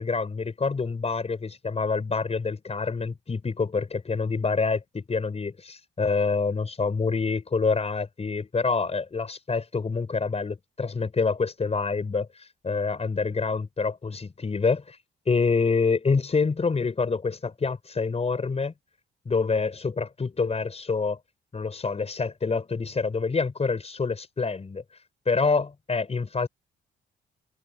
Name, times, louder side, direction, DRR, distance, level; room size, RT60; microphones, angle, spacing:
voice 1, 0.0-15.0 15.3-18.7 19.2-21.2 21.5-24.8 25.2-26.5, left 4 dB, 30° left, 5.2 m, -27 dB
cardioid pair, 90°, 20 cm